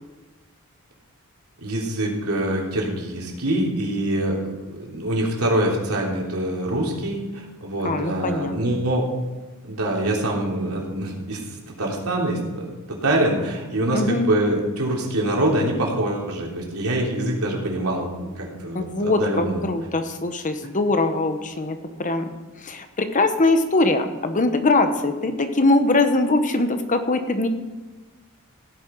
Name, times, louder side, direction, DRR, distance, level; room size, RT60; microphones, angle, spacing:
voice 1, 1.6-9.0 9.6-18.1 18.4-19.6, right 1 dB, 80° right, -2 dB, 3.4 m, -25 dB
voice 2, 7.8-8.5 13.9-14.3 18.7-22.3 22.6-27.5, left 2 dB, 35° left, 8 dB, 1.0 m, -22 dB
15.5 x 9.5 x 4.7 m, 1.2 s
head